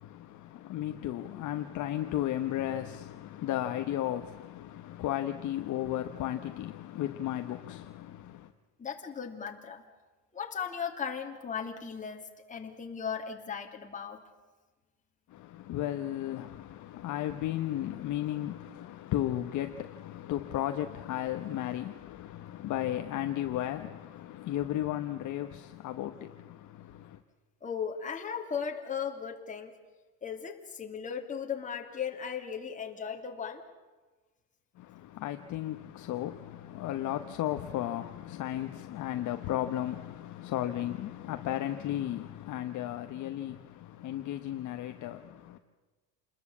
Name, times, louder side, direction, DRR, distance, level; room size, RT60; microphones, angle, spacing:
voice 1, 0.0-8.5 15.3-27.2 34.8-45.6, left 12 dB, 40° left, 1.1 m, -34 dB
voice 2, 8.8-9.8 10.3-14.2 27.6-29.7 30.2-33.6, left 7 dB, 15° left, 2.7 m, -37 dB
28.5 x 20.5 x 8.5 m
cardioid pair, 165°, 44 cm